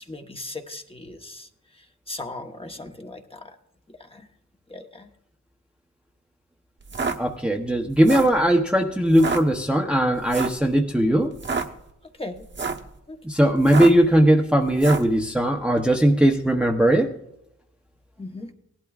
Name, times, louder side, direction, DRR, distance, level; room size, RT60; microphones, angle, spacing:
voice 1, 0.0-1.5 2.1-3.5 4.1-4.2 4.7-5.1 12.2-12.4 13.1-13.2 18.2-18.5, left 2 dB, 20° left, 4 dB, 1.0 m, -37 dB
walking on snow, 6.8-7.2 7.9-8.4 9.1-9.4 10.3-10.6 11.3-11.7 12.4-12.9 13.6-14.1 14.8-15.1, right 4 dB, 35° right, 1.0 m, -27 dB
voice 2, 7.2-11.3 13.2-17.1, right 1 dB, 5° right, 1 dB, 0.8 m, -19 dB
17.5 x 12.0 x 2.4 m, 0.77 s
wide cardioid pair, 95°, 31 cm